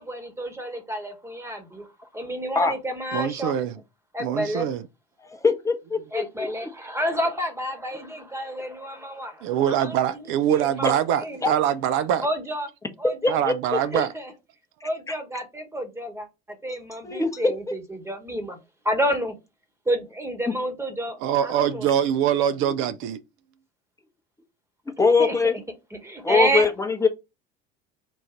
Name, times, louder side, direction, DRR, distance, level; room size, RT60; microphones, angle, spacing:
voice 1, 0.0-1.9 2.1-3.5 4.1-4.7 6.1-11.5 12.2-12.7 13.0-13.4 13.7-14.3 14.8-18.6 18.8-19.3 19.8-21.9 25.0-25.4 25.9-26.7, equal, 10° right, 1.2 m, -30 dB
voice 2, 3.1-3.7 4.2-4.8 9.4-12.3 13.3-14.1 21.2-23.2, right 10 dB, 45° right, 0.4 m, -23 dB
voice 3, 5.2-6.2 11.4-11.5 13.2-13.5 17.0-17.4 25.0-25.5 26.2-27.1, left 4 dB, 10° left, 0.8 m, -21 dB
3.7 x 2.5 x 4.3 m
figure-of-eight pair, 65°, 30 cm